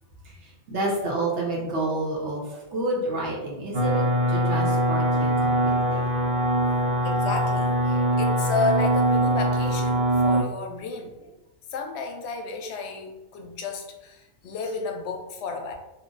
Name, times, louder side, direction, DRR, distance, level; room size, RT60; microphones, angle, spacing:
voice 1, 0.2-6.6, right 2 dB, 75° right, -4 dB, 1.3 m, -30 dB
sound 1, 3.7-10.4, right 1 dB, 40° right, 0.8 m, -22 dB
voice 2, 7.0-11.3 11.7-15.7, left 3 dB, 70° left, 4 dB, 0.8 m, -32 dB
3.1 x 2.2 x 3.8 m, 1.0 s
omnidirectional pair, 1.2 m